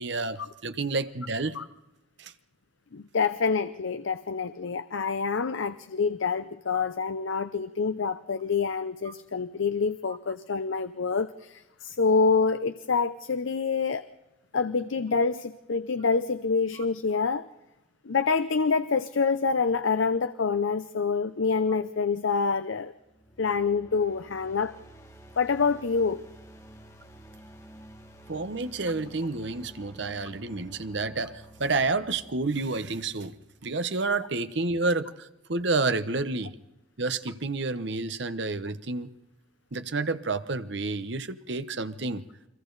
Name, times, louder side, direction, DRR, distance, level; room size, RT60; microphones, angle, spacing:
voice 1, 0.0-1.6 2.2-2.3 6.7-6.8 9.1-9.2 28.3-33.3 33.6-36.5 37.0-39.1 39.7-42.2, right 3 dB, 60° right, 12 dB, 1.0 m, -30 dB
voice 2, 2.9-14.1 14.5-17.5 18.0-22.9 23.4-24.8 25.4-26.2, left 5 dB, 75° left, 12 dB, 0.7 m, -26 dB
sound 1, 23.0-34.1, right 1 dB, 15° left, 1.7 m, -51 dB
30.0 x 23.0 x 4.0 m, 0.97 s
head